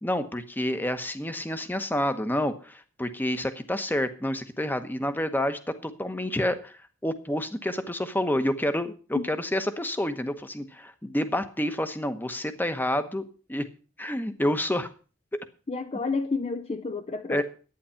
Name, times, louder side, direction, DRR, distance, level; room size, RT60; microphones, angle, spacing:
voice 1, 0.0-6.8 7.0-13.7 14.0-14.9 17.3-17.4, left 1 dB, 10° left, 0.9 m, -29 dB
voice 2, 15.7-17.4, left 4 dB, 30° left, 0.5 m, -30 dB
11.5 x 9.5 x 5.7 m
head